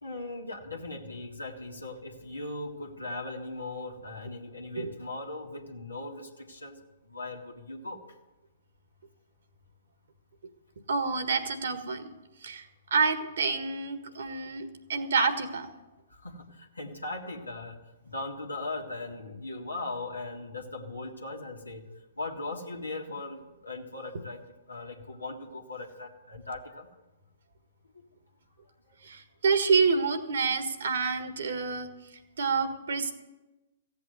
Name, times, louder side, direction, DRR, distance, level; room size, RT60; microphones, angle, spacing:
voice 1, 0.0-8.0 16.1-21.9 22.2-24.4 24.7-26.9 28.9-29.0, left 2 dB, 90° left, 0 dB, 1.7 m, -39 dB
voice 2, 10.9-12.0 12.4-15.7 29.0-31.9 32.4-33.1, right 4 dB, 70° right, 8 dB, 1.6 m, -28 dB
15.5 x 8.3 x 8.0 m, 1.1 s
figure-of-eight pair, 120°, 0 cm